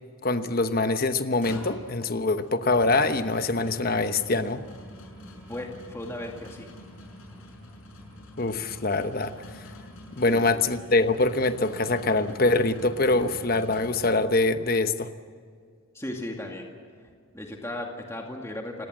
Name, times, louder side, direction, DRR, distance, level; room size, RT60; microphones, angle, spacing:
voice 1, 0.2-4.6 8.4-9.3 10.1-15.1, left 2 dB, 40° left, 10 dB, 1.0 m, -24 dB
sound 1, 1.4-14.6, left 1 dB, 70° left, 6.6 m, -45 dB
voice 2, 5.5-6.7 10.2-10.6 15.9-16.7 17.3-18.9, left 1 dB, 10° left, 1 dB, 2.2 m, -36 dB
29.5 x 18.0 x 7.7 m, 2.1 s
head